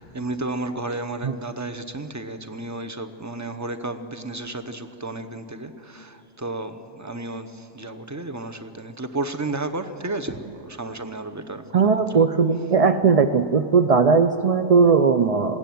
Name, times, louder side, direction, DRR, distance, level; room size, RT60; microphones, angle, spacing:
voice 1, 0.0-12.3, right 2 dB, 15° right, 8 dB, 0.8 m, -32 dB
voice 2, 11.7-15.6, right 5 dB, 65° right, 9 dB, 0.3 m, -18 dB
21.0 x 16.5 x 9.3 m, 2.7 s
omnidirectional pair, 1.4 m